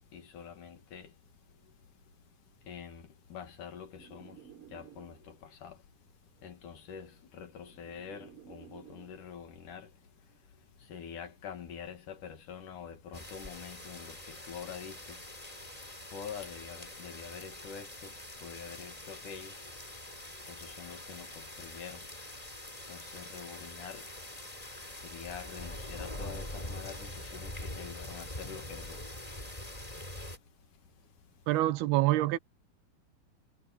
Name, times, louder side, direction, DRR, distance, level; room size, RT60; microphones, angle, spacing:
voice 1, 0.1-1.1 2.7-4.4 4.7-5.8 6.4-9.9 10.9-15.2 16.1-18.1 18.4-19.5 20.5-22.0 22.9-24.0 25.0-29.0, left 7 dB, 60° left, 3.2 m, -46 dB
sound 1, 4.0-5.5 6.5-9.2, right 9 dB, 35° right, 3.4 m, -54 dB
sound 2, 13.1-30.4, left 1 dB, 10° left, 3.4 m, -44 dB
voice 2, 31.5-32.4, right 16 dB, 85° right, 3.0 m, -26 dB
omnidirectional pair, 4.5 m